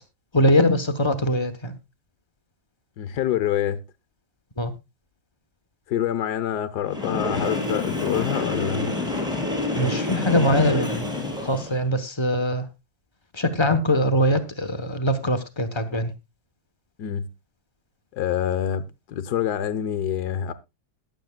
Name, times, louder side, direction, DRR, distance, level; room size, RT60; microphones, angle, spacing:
voice 1, 0.3-1.7 4.6-4.7 9.7-11.2 11.4-12.6 13.3-16.1, left 1 dB, 35° left, 0.4 m, -22 dB
voice 2, 3.0-3.8 5.9-8.9 17.0-17.3 18.1-20.5, left 10 dB, 60° left, 1.3 m, -26 dB
Train, 6.8-11.9, left 2 dB, ahead, 3.7 m, -28 dB
21.5 x 7.7 x 2.2 m
omnidirectional pair, 2.2 m